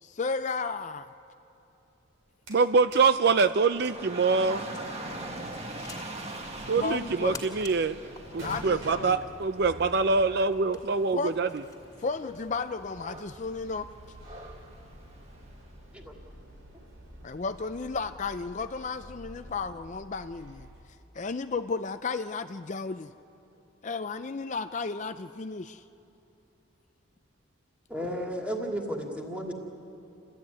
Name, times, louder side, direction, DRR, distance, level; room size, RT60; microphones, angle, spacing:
voice 1, 0.0-1.1 6.8-7.4 8.4-9.2 11.1-11.3 12.0-13.9 17.2-20.7 21.1-23.1 23.8-25.8, left 4 dB, 35° left, 10 dB, 0.4 m, -33 dB
sound 1, 2.1-3.1 3.4-20.8, right 1 dB, 85° right, 5.1 m, -49 dB
voice 2, 2.5-4.6 6.7-8.0 8.3-11.5, right 4 dB, 55° right, 11 dB, 0.5 m, -24 dB
Dog / Rain, 3.5-15.7, right 2 dB, 30° right, 1.8 m, -43 dB
sound 2, 4.4-11.9, left 4 dB, 20° left, 2.6 m, -51 dB
voice 3, 27.9-29.5, equal, 5° right, 0 dB, 2.5 m, -33 dB
29.5 x 13.0 x 9.6 m, 2.9 s
head